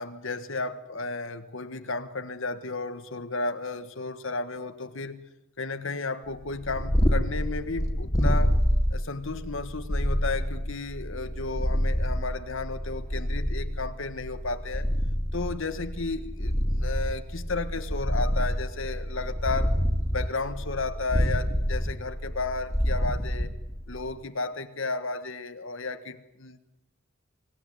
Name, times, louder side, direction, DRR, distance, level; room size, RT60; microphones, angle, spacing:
voice 1, 0.0-5.2 5.6-8.6 8.9-14.9 15.3-19.8 20.1-23.5 23.9-26.6, left 3 dB, 65° left, 8 dB, 1.5 m, -33 dB
Purr, 6.4-24.1, equal, 15° left, 2.9 m, -27 dB
25.0 x 17.5 x 9.7 m, 0.90 s
head